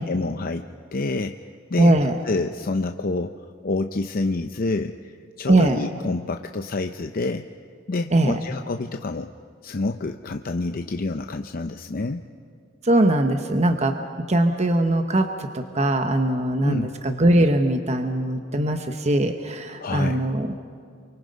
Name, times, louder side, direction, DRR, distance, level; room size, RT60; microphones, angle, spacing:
voice 1, 0.0-1.4 1.7-1.9 2.2-7.5 7.9-9.3 9.6-12.2 16.6-16.9 19.8-20.2, left 3 dB, 50° left, 7 dB, 0.6 m, -28 dB
voice 2, 1.8-2.2 5.5-5.8 8.1-8.4 12.8-13.9 14.3-20.5, right 1 dB, 35° right, 6 dB, 1.0 m, -21 dB
28.0 x 24.5 x 5.3 m, 2.2 s
head